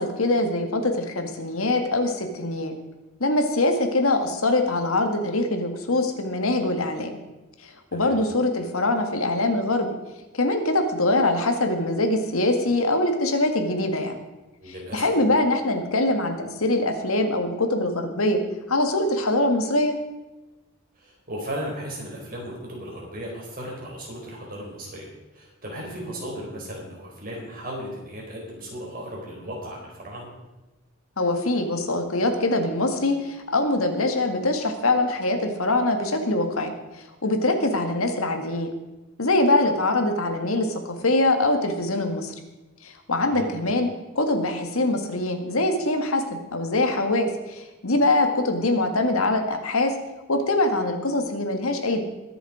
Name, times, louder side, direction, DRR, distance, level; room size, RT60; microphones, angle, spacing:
voice 1, 0.0-2.7 3.2-7.2 7.6-9.9 10.4-14.2 14.9-18.4 18.7-19.9 31.2-36.7 37.2-38.7 39.2-42.3 42.8-43.9 44.2-49.9 50.3-52.0, left 2 dB, 80° left, 5 dB, 1.8 m, -23 dB
voice 2, 7.9-8.2 14.6-15.1 20.9-30.3 43.3-43.5, equal, 40° right, -2 dB, 4.6 m, -36 dB
21.5 x 7.1 x 5.0 m, 1.1 s
head